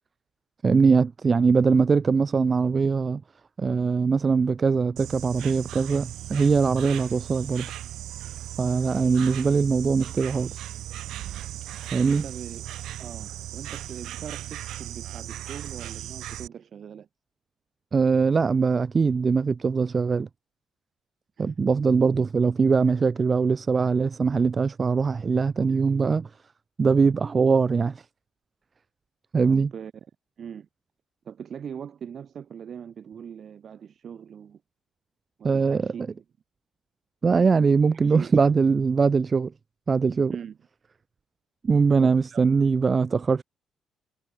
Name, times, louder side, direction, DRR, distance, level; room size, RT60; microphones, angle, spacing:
voice 1, 0.6-3.2 3.6-7.7 8.6-10.5 11.9-12.2 17.9-20.3 21.4-26.3 26.8-28.0 29.3-29.7 35.4-35.9 37.2-39.5 39.9-40.3 41.6-43.4, right 5 dB, 30° right, 1.1 m, -22 dB
Insect, 5.0-16.5, right 13 dB, 75° right, 7.2 m, -37 dB
voice 2, 12.0-12.7 13.0-17.1 21.4-21.5 29.4-29.9 30.4-30.7 31.2-34.6 35.4-36.2 37.9-38.4 40.3-40.6 42.0-42.4, right 8 dB, 45° right, 6.3 m, -41 dB
cardioid pair, 125°, 0 cm